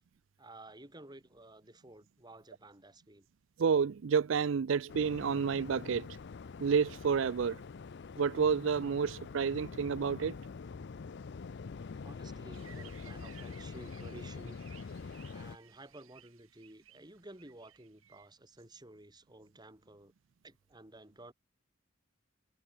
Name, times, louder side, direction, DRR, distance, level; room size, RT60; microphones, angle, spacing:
voice 1, 0.4-3.3 12.0-14.6 15.0-20.1 20.4-21.3, right 1 dB, 20° right, 3.2 m, -53 dB
voice 2, 3.6-6.1 6.6-7.6 8.2-10.4, right 6 dB, 65° right, 0.4 m, -30 dB
Waves surf, 4.9-15.6, left 4 dB, 55° left, 0.5 m, -45 dB
sound 1, 12.5-18.3, right 10 dB, 80° right, 3.5 m, -59 dB
head